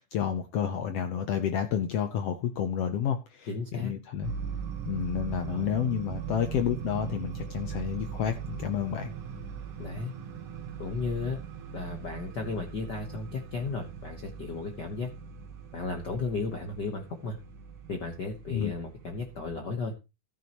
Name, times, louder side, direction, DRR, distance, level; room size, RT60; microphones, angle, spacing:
voice 1, 0.0-4.3 4.9-9.1 18.5-18.7, left 8 dB, 70° left, 8 dB, 1.5 m, -30 dB
voice 2, 3.5-3.9 5.5-5.7 9.8-10.1 10.8-11.4 11.7-15.1 15.7-17.4 17.9-19.9, left 4 dB, 55° left, 4 dB, 1.2 m, -34 dB
sound 1, 4.2-19.5, right 7 dB, 55° right, 1.9 m, -40 dB
14.0 x 9.5 x 3.0 m, 0.27 s
omnidirectional pair, 3.5 m